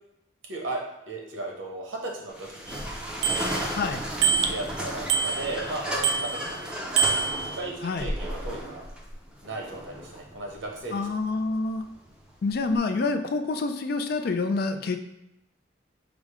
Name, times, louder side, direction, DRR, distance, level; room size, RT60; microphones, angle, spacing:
voice 1, 0.4-0.8 1.1-2.7 3.2-3.7 4.5-7.1 7.4-8.8 9.4-11.0, right 2 dB, 85° right, -1 dB, 1.0 m, -36 dB
sound 1, 2.3-12.8, equal, 5° right, 0.5 m, -35 dB
Bicycle bell, 2.7-2.8 3.2-3.8 4.2-4.7 5.1-5.7 6.0-6.6 7.0-7.7, right 6 dB, 65° right, 0.4 m, -26 dB
voice 2, 3.7-4.0 7.8-8.1 10.9-11.9 12.4-15.0, left 3 dB, 50° left, 8 dB, 0.3 m, -27 dB
4.9 x 2.1 x 4.8 m, 0.85 s
head